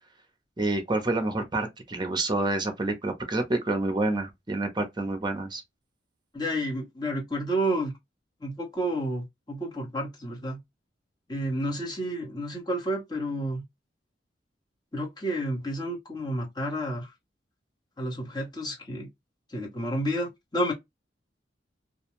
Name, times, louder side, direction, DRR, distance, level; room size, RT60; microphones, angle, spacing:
voice 1, 0.6-5.6, right 2 dB, 25° right, 0.6 m, -28 dB
voice 2, 6.3-7.9 8.4-10.6 11.3-13.6 14.9-17.1 18.0-19.1 19.5-20.7, right 1 dB, 25° left, 1.1 m, -30 dB
2.5 x 2.3 x 2.9 m
head